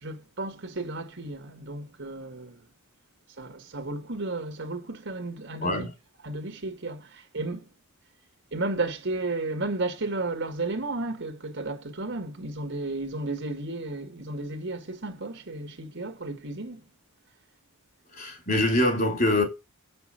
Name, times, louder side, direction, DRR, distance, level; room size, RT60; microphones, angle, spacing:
voice 1, 0.0-2.6 3.4-5.8 6.2-7.7 8.5-16.8, right 2 dB, 55° right, 1.9 m, -33 dB
voice 2, 18.1-19.4, left 1 dB, 40° left, 3.6 m, -24 dB
7.7 x 6.1 x 7.5 m
head